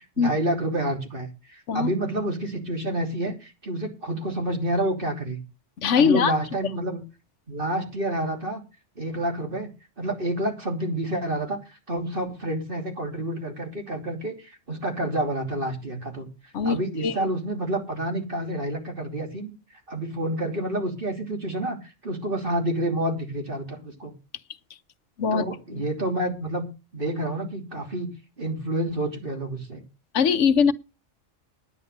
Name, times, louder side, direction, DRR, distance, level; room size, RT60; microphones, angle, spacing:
voice 1, 0.0-5.4 5.9-7.0 7.5-8.6 9.0-9.7 10.0-16.3 16.6-19.5 19.9-24.1 25.3-26.7 26.9-28.1 28.4-29.8, right 1 dB, 45° right, 3.3 m, -29 dB
voice 2, 5.8-6.3 16.5-17.3 25.2-25.4 25.7-25.8 30.1-30.7, left 6 dB, 75° left, 1.1 m, -21 dB
10.0 x 9.8 x 6.6 m
omnidirectional pair, 1.2 m